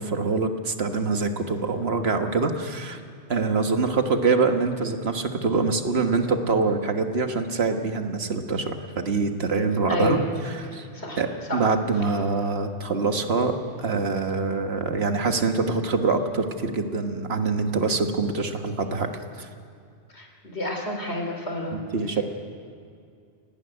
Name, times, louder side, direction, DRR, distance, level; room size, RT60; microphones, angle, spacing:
voice 1, 0.0-3.0 3.3-10.2 10.4-10.9 11.2-19.1 19.4-19.5 21.7-22.2, right 4 dB, 65° right, 6 dB, 1.7 m, -25 dB
voice 2, 9.9-10.3 10.7-11.2 11.5-11.6 20.1-20.3 20.5-21.8, left 1 dB, 75° left, 2 dB, 3.5 m, -29 dB
29.5 x 11.0 x 9.7 m, 2.4 s
omnidirectional pair, 1.1 m